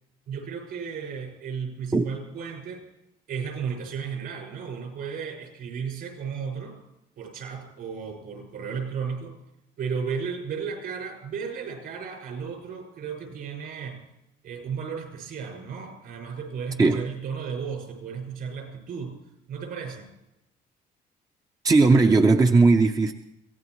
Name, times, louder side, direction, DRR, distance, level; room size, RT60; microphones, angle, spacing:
voice 1, 0.3-2.8 3.3-6.8 7.2-9.3 9.8-14.0 14.4-19.1 19.5-20.1, right 6 dB, 65° right, 3 dB, 6.1 m, -34 dB
voice 2, 21.6-23.1, right 3 dB, 20° right, 5 dB, 0.7 m, -18 dB
23.5 x 16.5 x 3.2 m, 0.85 s
cardioid pair, 110°, 17 cm